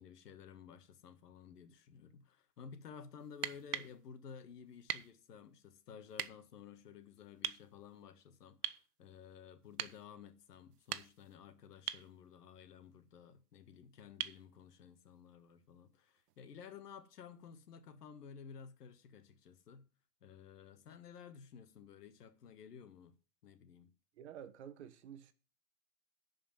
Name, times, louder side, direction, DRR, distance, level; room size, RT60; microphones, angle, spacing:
voice 1, 0.0-19.9 20.2-23.1 23.4-23.9, left 7 dB, 80° left, 1.8 m, -54 dB
sound 1, 3.3-3.9 4.9-5.1 6.1-6.3 7.4-7.6 8.6-8.9 9.8-10.0 10.7-11.3 11.9-12.1 14.2-14.4 16.3-16.4, right 11 dB, 85° right, 0.9 m, -40 dB
voice 2, 24.2-25.3, right 9 dB, 45° right, 1.0 m, -50 dB
11.5 x 5.1 x 7.3 m
supercardioid pair, 175°, 46 cm